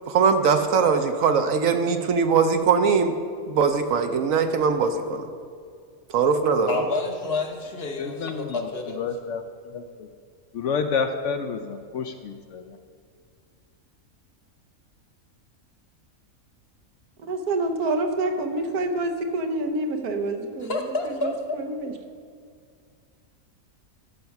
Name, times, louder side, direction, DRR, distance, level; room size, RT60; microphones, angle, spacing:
voice 1, 0.1-3.2 3.5-5.3 6.1-6.8, right 5 dB, 70° right, 8 dB, 1.1 m, -21 dB
voice 2, 6.7-9.0 20.6-21.6, left 3 dB, 45° left, 3 dB, 1.0 m, -29 dB
voice 3, 8.0-8.6 9.0-10.1 10.5-12.8, left 5 dB, 65° left, 7 dB, 0.8 m, -29 dB
voice 4, 17.3-20.8 21.0-21.9, right 2 dB, 90° right, 4 dB, 1.4 m, -27 dB
13.0 x 5.3 x 5.8 m, 2.2 s
omnidirectional pair, 1.6 m